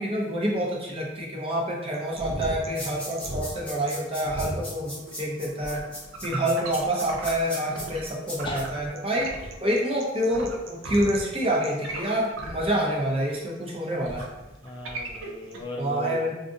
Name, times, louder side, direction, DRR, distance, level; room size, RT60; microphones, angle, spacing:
voice 1, 0.0-5.8 6.2-9.3 9.6-14.3 15.8-16.3, equal, 30° right, -3 dB, 0.7 m, -27 dB
sound 1, 1.9-8.1 8.3-15.6, right 2 dB, 90° right, 0.5 m, -37 dB
sound 2, 2.7-8.6, left 1 dB, 5° left, 0.9 m, -38 dB
voice 2, 14.6-16.3, left 2 dB, 25° left, -1 dB, 0.3 m, -36 dB
2.5 x 2.5 x 3.7 m, 1.1 s
head